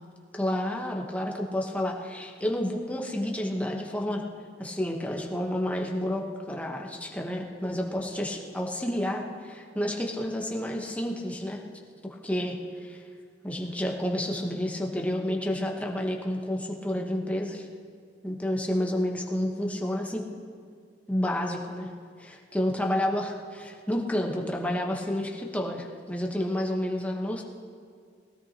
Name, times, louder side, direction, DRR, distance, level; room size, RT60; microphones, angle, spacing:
voice 1, 0.3-4.2 4.6-11.6 12.0-13.0 13.4-17.7 18.2-20.2 21.1-21.9 22.2-27.4, left 1 dB, 10° left, 0 dB, 1.1 m, -30 dB
18.5 x 16.5 x 2.9 m, 2.1 s
head